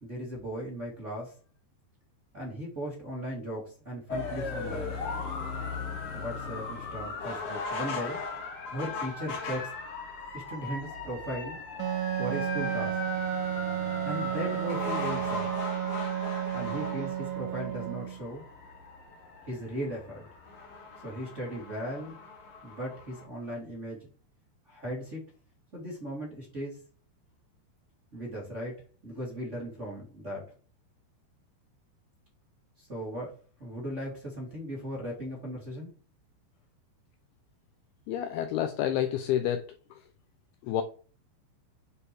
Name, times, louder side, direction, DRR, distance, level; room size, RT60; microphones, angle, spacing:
voice 1, 0.0-1.4 2.3-5.0 6.1-8.2 8.7-9.7 10.3-11.6 12.2-13.0 13.8-15.5 16.5-18.4 19.4-20.3 21.0-22.2 22.6-24.1 24.7-25.2 25.7-26.8 28.1-28.7 29.0-30.4 32.8-33.3 33.6-35.9, equal, 20° right, -4 dB, 2.2 m, -37 dB
sound 1, 4.1-23.2, left 4 dB, 45° left, 1.9 m, -38 dB
Wind instrument woodwind instrument, 11.8-18.2, right 12 dB, 80° right, 2.2 m, -32 dB
voice 2, 38.1-39.6 40.6-40.8, left 10 dB, 85° left, 8 dB, 2.3 m, -28 dB
9.2 x 5.6 x 4.7 m, 0.39 s
omnidirectional pair, 5.3 m